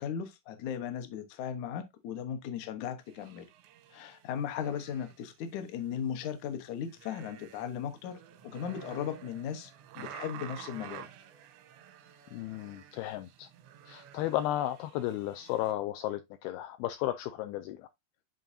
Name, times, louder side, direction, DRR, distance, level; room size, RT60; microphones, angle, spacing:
voice 1, 0.0-3.5 3.9-8.2 8.5-11.1, left 8 dB, 70° left, 1.8 m, -37 dB
sound 1, 3.0-5.3 5.6-6.5 6.8-15.7, right 10 dB, 90° right, 3.2 m, -51 dB
voice 2, 12.3-13.5 13.9-17.9, left 13 dB, 85° left, 2.2 m, -34 dB
10.5 x 3.8 x 2.7 m
omnidirectional pair, 4.9 m